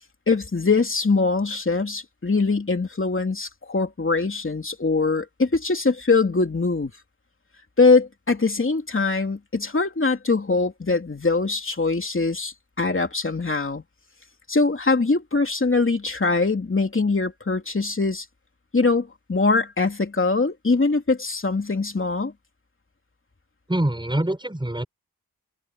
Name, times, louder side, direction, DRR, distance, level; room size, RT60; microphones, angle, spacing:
voice 1, 0.3-6.9 7.8-13.8 14.5-18.2 18.7-22.3, left 3 dB, 35° left, 3.0 m, -22 dB
voice 2, 23.7-24.8, right 1 dB, 15° right, 5.6 m, -24 dB
wide cardioid pair, 80°, 34 cm